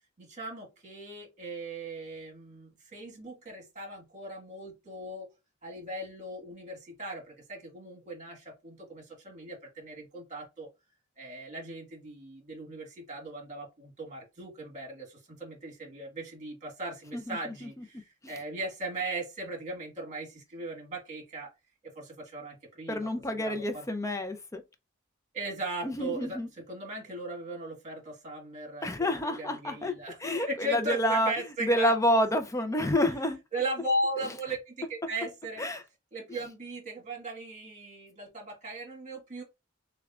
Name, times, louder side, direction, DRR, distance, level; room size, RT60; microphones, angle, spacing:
voice 1, 0.2-5.3 5.6-10.7 11.2-21.5 21.8-23.1 23.4-23.8 25.3-31.9 33.5-35.6 36.1-39.4, right 1 dB, 35° right, 1.6 m, -38 dB
voice 2, 17.1-17.8 22.9-24.6 25.8-26.5 28.8-29.9 30.2-31.3 31.6-33.4 35.6-35.8, left 1 dB, 15° left, 0.5 m, -28 dB
6.7 x 2.2 x 2.4 m
head